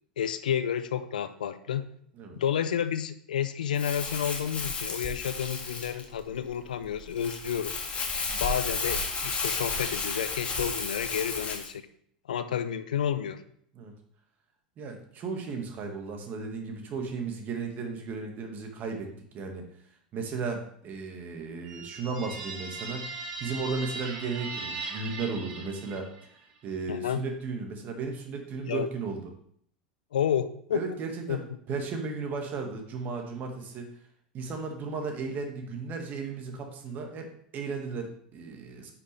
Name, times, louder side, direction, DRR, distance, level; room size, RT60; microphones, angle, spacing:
voice 1, 0.2-1.9 2.4-7.8 8.4-11.8 12.3-13.4 26.9-27.2 28.6-28.9 30.1-30.8 31.3-31.4, left 9 dB, 75° left, 13 dB, 0.6 m, -30 dB
Crumpling crinkling, 3.7-11.7, left 4 dB, 25° left, 1.8 m, -33 dB
voice 2, 14.8-19.7 20.1-26.1 26.6-29.3 30.7-33.9 34.3-37.3 37.5-38.9, right 4 dB, 40° right, 3 dB, 1.7 m, -35 dB
sound 1, 21.6-26.4, right 3 dB, 60° right, 2.3 m, -39 dB
9.8 x 5.9 x 3.3 m, 0.64 s
hypercardioid pair, 85°, 5 cm